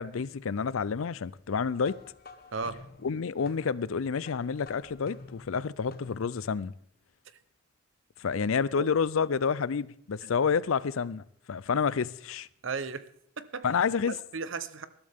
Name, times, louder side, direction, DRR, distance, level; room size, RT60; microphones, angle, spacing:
voice 1, 0.0-2.0 3.0-6.7 8.2-12.5 13.6-14.1, left 6 dB, 85° left, 0.5 m, -29 dB
sound 1, 1.8-6.5, left 2 dB, 50° left, 1.4 m, -50 dB
voice 2, 12.6-13.1 13.4-13.7 14.3-14.9, right 4 dB, 70° right, 0.9 m, -35 dB
19.5 x 12.0 x 3.6 m
head